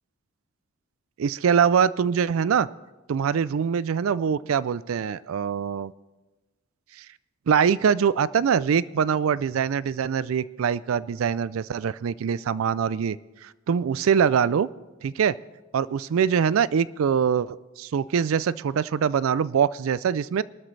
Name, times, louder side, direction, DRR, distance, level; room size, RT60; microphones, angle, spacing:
voice 1, 1.2-2.7 3.1-5.9 7.0-7.1 7.5-13.2 13.4-14.7 15.0-15.3 15.7-20.4, right 7 dB, 80° right, 19 dB, 0.4 m, -23 dB
25.0 x 12.5 x 3.3 m, 1.1 s
head